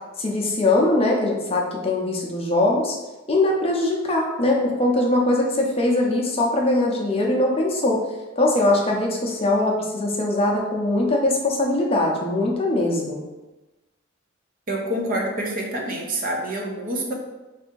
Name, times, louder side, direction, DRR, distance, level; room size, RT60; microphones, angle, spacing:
voice 1, 0.2-3.0 3.3-8.0 8.4-13.2, left 2 dB, 30° left, -1 dB, 0.6 m, -21 dB
voice 2, 14.7-17.1, right 1 dB, 45° right, 0 dB, 0.6 m, -27 dB
3.3 x 2.6 x 4.5 m, 1.1 s
head